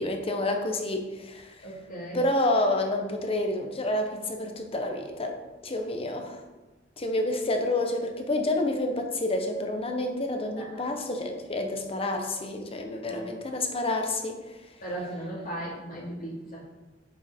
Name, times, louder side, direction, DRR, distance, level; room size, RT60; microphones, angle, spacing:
voice 1, 0.0-1.7 2.1-5.4 5.6-6.4 7.0-14.6, left 1 dB, 30° left, 4 dB, 0.8 m, -29 dB
voice 2, 1.6-2.2 10.7-10.8 13.1-13.3 14.8-16.6, right 1 dB, 50° left, -7 dB, 2.6 m, -37 dB
7.0 x 6.0 x 3.6 m, 1.1 s
head